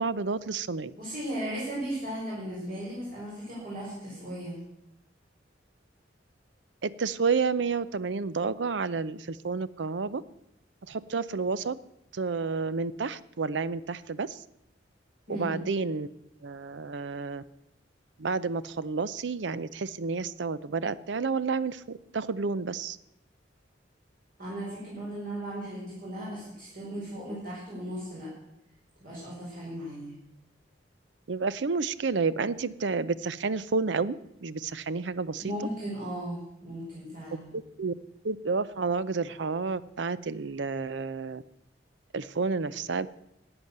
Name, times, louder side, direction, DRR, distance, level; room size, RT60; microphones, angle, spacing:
voice 1, 0.0-0.9 6.8-10.2 10.9-11.8 12.1-14.4 15.3-16.1 16.4-17.4 18.2-23.0 31.3-35.4 37.5-37.9 38.2-41.4 42.1-43.1, right 4 dB, 75° right, 17 dB, 0.6 m, -30 dB
voice 2, 1.0-4.6 15.3-15.6 24.4-28.3 29.0-30.1 35.4-37.5, right 1 dB, 50° right, -6 dB, 4.6 m, -36 dB
13.0 x 8.9 x 8.0 m, 0.83 s
head